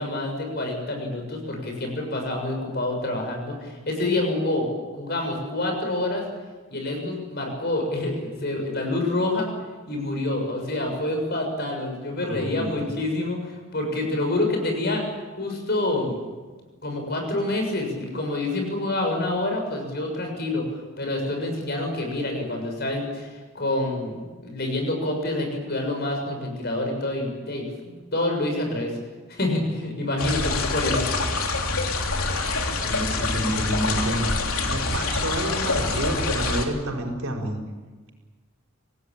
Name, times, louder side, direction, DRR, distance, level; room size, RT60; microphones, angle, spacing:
voice 1, 0.0-6.2 6.7-9.5 9.9-15.1 15.4-16.2 16.8-28.9 29.3-31.0, left 2 dB, 50° left, 3 dB, 6.8 m, -27 dB
voice 2, 12.2-12.8 32.7-34.3 34.6-37.6, right 1 dB, 80° right, 1 dB, 5.0 m, -29 dB
sound 1, 30.2-36.6, left 3 dB, 85° left, 3.2 m, -26 dB
26.0 x 18.5 x 8.9 m, 1.3 s
head